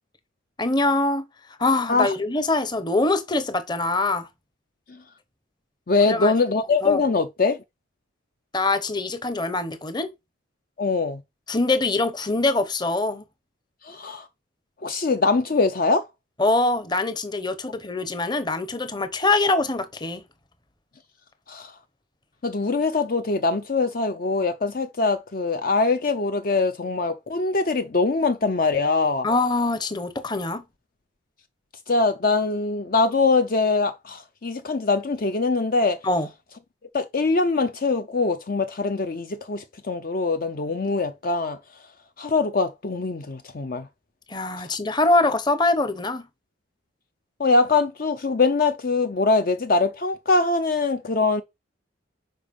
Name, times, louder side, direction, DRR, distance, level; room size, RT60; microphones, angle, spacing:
voice 1, 0.6-1.3 1.6-4.3 6.0-6.3 6.8-7.0 8.5-10.1 11.5-13.2 16.4-20.2 29.2-30.6 36.0-36.3 44.3-46.3, left 2 dB, 20° left, 0.9 m, -23 dB
voice 2, 5.9-7.6 10.8-11.2 13.8-14.3 14.8-16.1 21.5-21.7 22.4-29.3 31.9-36.0 36.9-41.6 42.2-43.9 44.6-44.7 47.4-51.4, left 3 dB, 45° left, 0.6 m, -23 dB
6.8 x 5.0 x 5.3 m
head